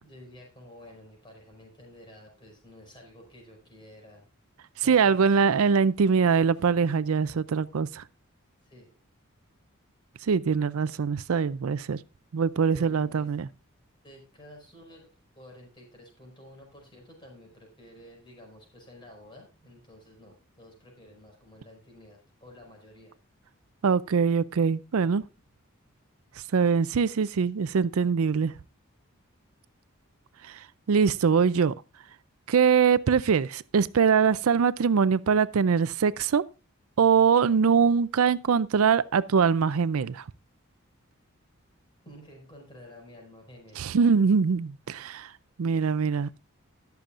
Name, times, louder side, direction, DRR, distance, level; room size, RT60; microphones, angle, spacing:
voice 1, 0.0-4.3 4.8-5.5 8.7-9.0 12.7-13.3 14.0-15.1 15.4-23.1 42.0-43.9, left 1 dB, 20° left, 5.4 m, -51 dB
voice 2, 4.9-8.0 10.3-12.0 12.3-13.5 23.8-25.2 26.5-28.5 30.4-30.6 30.9-31.7 32.5-36.4 37.0-40.2 43.8-45.3 45.6-46.3, right 6 dB, 75° right, 0.4 m, -23 dB
20.5 x 7.0 x 2.5 m
head